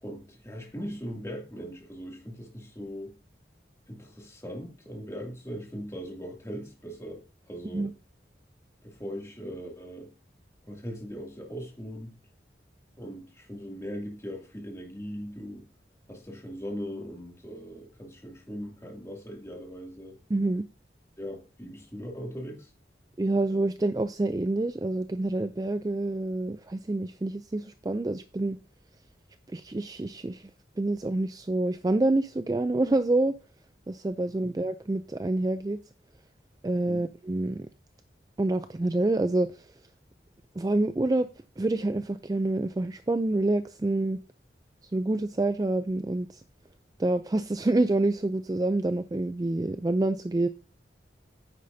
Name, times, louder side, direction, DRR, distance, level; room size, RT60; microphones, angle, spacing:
voice 1, 0.0-3.2 3.9-7.2 7.5-7.9 8.8-10.1 10.7-12.1 13.0-15.7 16.1-20.2 21.2-22.7 34.4-34.5 36.9-37.1, equal, 15° left, 2.4 m, -39 dB
voice 2, 20.3-20.7 23.2-28.6 29.5-30.5 30.8-33.3 33.9-35.8 36.6-37.7 38.4-39.7 40.6-41.3 41.6-44.2 44.9-46.4 47.0-50.5, right 2 dB, 20° right, 0.3 m, -27 dB
9.9 x 8.4 x 2.7 m
head